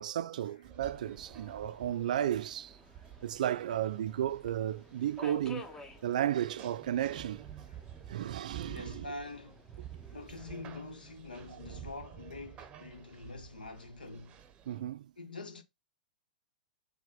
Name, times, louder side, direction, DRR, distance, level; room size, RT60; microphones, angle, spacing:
voice 1, 0.0-2.8 3.2-5.7 6.0-7.4 8.1-9.0 14.7-15.1, right 11 dB, 60° right, 0.4 m, -33 dB
sound 1, 0.6-14.8, right 9 dB, 25° right, 0.7 m, -51 dB
Subway metro underground, 0.9-10.8, left 2 dB, 10° left, 0.7 m, -54 dB
voice 2, 8.7-9.6 10.1-14.4 15.2-15.6, left 2 dB, 75° left, 1.0 m, -45 dB
6.4 x 2.2 x 3.8 m
figure-of-eight pair, 105°, 5 cm